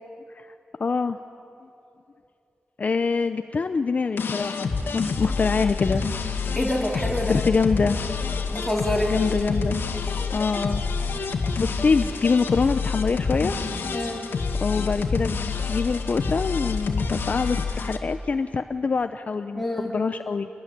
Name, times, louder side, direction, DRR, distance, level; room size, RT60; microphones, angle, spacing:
voice 1, 0.8-1.2 2.8-6.0 7.3-8.0 9.1-9.8 10.3-10.8 11.6-13.6 14.6-19.6 19.9-20.5, left 4 dB, 45° left, 9 dB, 0.7 m, -24 dB
sound 1, 4.2-18.0, left 4 dB, 80° left, 2.0 m, -27 dB
voice 2, 6.6-7.4 8.5-9.2 13.9-14.2 19.6-19.9, left 1 dB, 5° left, -2 dB, 3.8 m, -26 dB
28.0 x 19.5 x 10.0 m, 2.7 s
wide cardioid pair, 160°, 4 cm